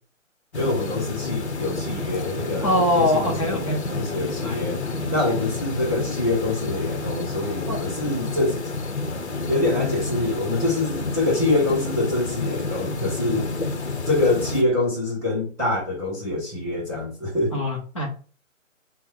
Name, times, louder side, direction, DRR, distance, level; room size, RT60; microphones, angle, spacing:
sound 1, 0.5-14.6, left 3 dB, 55° left, 0.9 m, -29 dB
voice 1, 0.5-4.8 5.1-8.6 9.5-13.5 14.0-17.6, left 2 dB, ahead, -9 dB, 1.4 m, -25 dB
voice 2, 2.6-3.9 4.2-5.0 7.7-7.8 17.5-18.2, left 1 dB, 25° left, 0 dB, 0.8 m, -24 dB
4.5 x 2.2 x 3.9 m, 0.39 s
hypercardioid pair, 160°, 40 cm